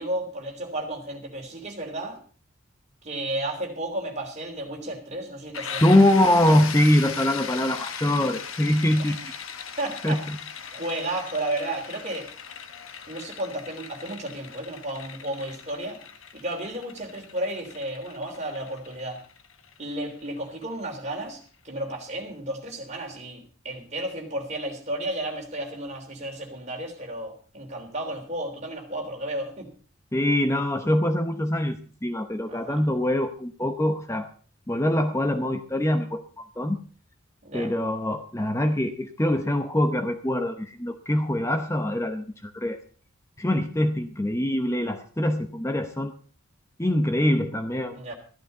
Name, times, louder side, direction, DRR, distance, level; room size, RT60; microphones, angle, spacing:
voice 1, 0.0-2.2 3.0-6.0 9.0-9.2 9.8-10.2 10.7-12.3 13.1-16.0 16.3-19.2 19.8-29.7 32.5-32.8 37.4-37.7 47.9-48.1, right 1 dB, 35° right, 1 dB, 3.4 m, -33 dB
sound 1, 5.5-21.1, left 7 dB, 75° left, 1.3 m, -39 dB
voice 2, 5.8-9.3 10.0-10.4 30.1-34.3 34.7-36.8 37.5-42.8 43.4-46.1 46.8-48.0, left 1 dB, 15° left, 7 dB, 0.8 m, -23 dB
14.0 x 12.0 x 5.4 m, 0.40 s
head